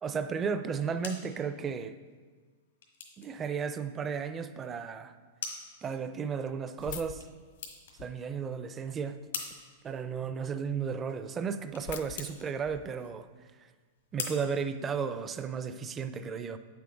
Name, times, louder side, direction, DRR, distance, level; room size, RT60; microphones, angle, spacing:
voice 1, 0.0-2.0 3.2-5.1 5.8-7.3 8.0-9.2 9.8-13.3 14.1-16.6, right 6 dB, 20° right, 11 dB, 0.4 m, -34 dB
sound 1, 0.6-15.5, left 5 dB, 85° left, 1.5 m, -47 dB
sound 2, 6.8-8.3 8.9-9.5 10.0-10.1 10.3-10.4 10.8-10.9 11.1-13.1, left 10 dB, 65° left, 0.5 m, -46 dB
8.2 x 7.0 x 3.9 m, 1.5 s
hypercardioid pair, 135°, 0 cm